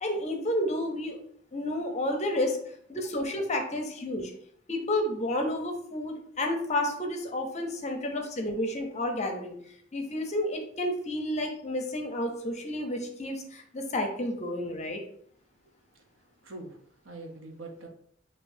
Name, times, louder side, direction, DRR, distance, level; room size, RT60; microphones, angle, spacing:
voice 1, 0.0-1.2 1.5-2.6 2.9-4.3 4.7-9.6 9.9-15.0, left 1 dB, 35° left, 4 dB, 0.7 m, -31 dB
voice 2, 15.9-17.9, right 2 dB, 75° right, 2 dB, 0.8 m, -45 dB
6.7 x 2.8 x 2.7 m, 0.62 s
head